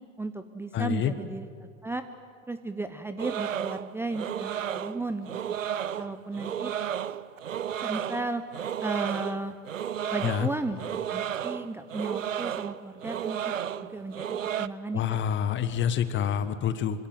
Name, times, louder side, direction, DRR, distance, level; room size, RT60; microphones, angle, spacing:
voice 1, 0.2-1.5 1.8-2.0 2.5-5.4 6.0-6.7 7.8-8.4 8.8-9.5 10.1-10.8 11.1-13.5 13.9-15.2, right 2 dB, 5° right, 10 dB, 0.9 m, -34 dB
voice 2, 0.7-1.1 10.2-10.5 14.9-17.1, left 9 dB, 30° left, 13 dB, 1.5 m, -27 dB
sound 1, 3.2-14.7, right 9 dB, 75° right, 0.8 m, -33 dB
26.0 x 25.5 x 7.8 m, 2.2 s
figure-of-eight pair, 90°, 39 cm